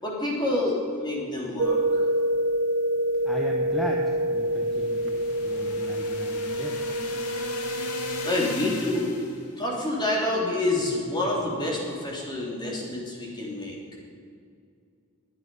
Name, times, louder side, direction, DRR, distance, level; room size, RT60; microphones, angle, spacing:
voice 1, 0.0-2.0 8.2-9.2 9.6-13.8, left 2 dB, 20° left, -3 dB, 3.2 m, -28 dB
sound 1, 1.6-8.5, right 1 dB, 55° right, 0.8 m, -27 dB
voice 2, 3.2-6.8, equal, ahead, -2 dB, 1.2 m, -36 dB
sound 2, 4.5-9.5, left 3 dB, 90° left, 2.2 m, -38 dB
21.5 x 8.9 x 5.5 m, 2.3 s
head